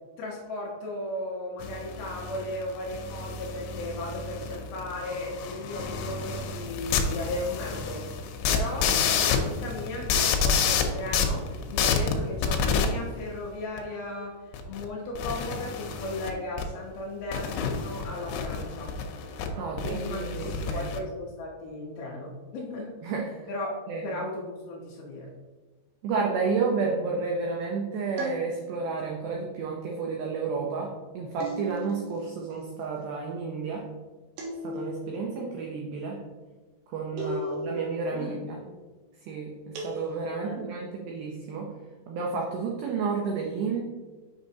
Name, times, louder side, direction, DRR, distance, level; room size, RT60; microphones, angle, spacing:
voice 1, 0.2-8.0 8.5-18.9 19.8-22.9 23.5-23.7 24.0-25.3 37.1-37.6 38.1-38.8 40.4-40.8, left 2 dB, 70° left, -3 dB, 2.5 m, -36 dB
sound 1, 1.6-12.9 13.8-13.9 14.5-14.9 15.2-16.3 16.6-16.7 17.3-19.5 19.8-21.0, left 6 dB, 90° left, 3.1 m, -29 dB
voice 2, 19.6-20.9 23.0-23.4 23.9-24.1 26.0-33.9 34.6-36.2 36.9-38.6 39.3-41.7 42.1-43.8, right 4 dB, 85° right, -1 dB, 2.1 m, -31 dB
sound 2, 28.2-29.0 31.4-32.2 34.4-35.2 37.2-38.0 39.7-40.6, equal, 70° right, 2.1 m, -36 dB
7.4 x 6.1 x 2.7 m, 1.3 s
omnidirectional pair, 5.3 m